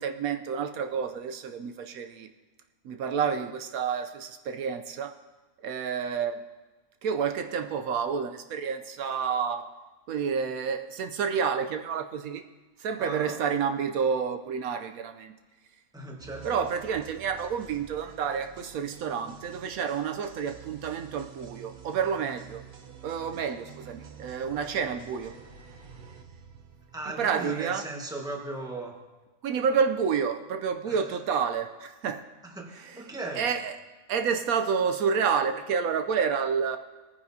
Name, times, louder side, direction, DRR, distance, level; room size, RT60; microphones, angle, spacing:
voice 1, 0.0-2.3 2.8-5.2 5.6-6.4 7.0-9.7 10.1-12.4 12.8-15.3 16.4-22.6 23.0-25.3 27.2-27.8 29.4-32.2 32.8-33.0 33.4-33.7 34.1-36.8, right 6 dB, 75° right, 7 dB, 1.0 m, -29 dB
voice 2, 13.0-13.4 15.9-16.6 26.9-29.0 30.9-31.2 32.4-33.5, right 2 dB, 5° right, 0 dB, 1.2 m, -37 dB
sound 1, 16.2-27.9, right 6 dB, 45° right, 0.7 m, -49 dB
19.0 x 9.8 x 2.7 m, 1.2 s
omnidirectional pair, 1.6 m